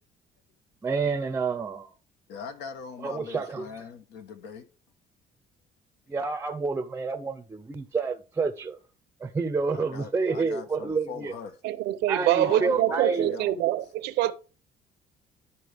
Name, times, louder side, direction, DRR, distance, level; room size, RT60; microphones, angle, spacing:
voice 1, 0.8-1.9 3.0-3.7 6.1-8.8 9.2-11.3 12.1-13.3, right 4 dB, 15° right, 0.5 m, -29 dB
voice 2, 2.3-4.7 9.7-11.6 12.4-13.7, left 6 dB, 85° left, 1.1 m, -41 dB
voice 3, 11.6-14.3, right 13 dB, 85° right, 0.7 m, -25 dB
11.5 x 4.2 x 3.4 m
cardioid pair, 110°, 17 cm